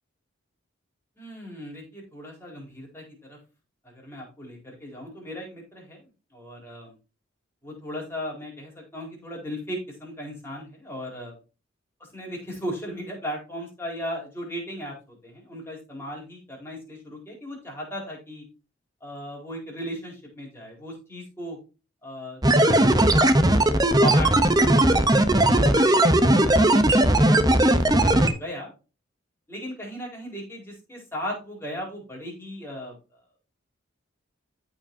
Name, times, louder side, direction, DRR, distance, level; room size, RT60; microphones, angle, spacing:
voice 1, 1.2-3.4 3.8-6.9 7.6-11.4 12.1-18.4 19.0-21.6 22.0-23.5 23.8-25.0 25.5-28.7 29.5-33.0, equal, 10° left, -2 dB, 4.4 m, -37 dB
sound 1, 22.4-28.3, right 1 dB, 20° right, 0.8 m, -18 dB
14.5 x 5.0 x 2.7 m, 0.32 s
head